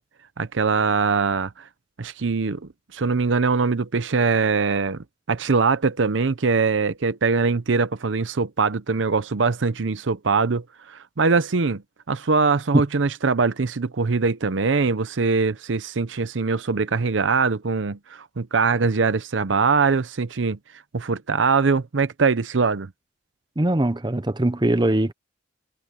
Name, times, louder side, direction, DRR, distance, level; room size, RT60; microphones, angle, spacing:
voice 1, 0.4-1.7 2.0-11.8 12.1-20.6 20.9-22.9, right 4 dB, 80° right, 0.7 m, -22 dB
voice 2, 23.6-25.1, right 1 dB, 25° right, 0.8 m, -21 dB
head